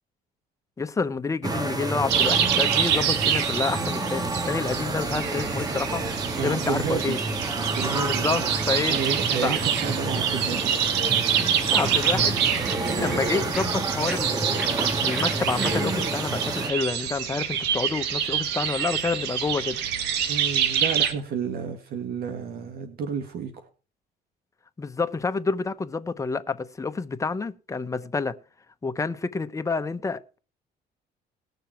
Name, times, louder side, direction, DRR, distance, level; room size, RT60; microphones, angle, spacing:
voice 1, 0.8-6.0 6.4-7.2 8.0-9.0 9.4-9.6 11.7-19.8 24.8-28.3 28.8-30.4, left 4 dB, 20° left, 0.9 m, -29 dB
sound 1, 1.4-16.7, right 2 dB, 20° right, 1.6 m, -29 dB
sound 2, 2.1-21.1, right 9 dB, 90° right, 1.6 m, -27 dB
voice 2, 6.4-7.2 7.5-8.5 8.9-10.7 20.3-23.7, right 6 dB, 65° right, 1.7 m, -31 dB
sound 3, 11.6-16.7, equal, 5° right, 1.6 m, -39 dB
19.0 x 6.8 x 4.5 m
cardioid pair, 110°, 17 cm